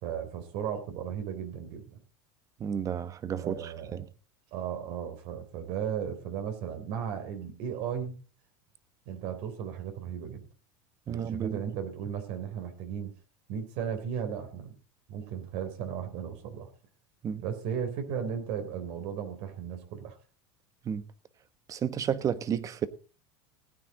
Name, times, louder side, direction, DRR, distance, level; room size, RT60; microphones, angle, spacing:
voice 1, 0.0-2.0 3.4-4.0 4.5-8.2 9.1-10.5 11.1-13.1 13.5-14.8 15.1-16.7 17.4-20.2, right 8 dB, 60° right, 3.7 m, -35 dB
voice 2, 2.6-4.1 11.1-11.6 17.2-17.4 20.8-21.0 21.7-22.9, right 8 dB, 30° right, 1.2 m, -32 dB
19.0 x 9.5 x 3.9 m
supercardioid pair, 130°, 12 cm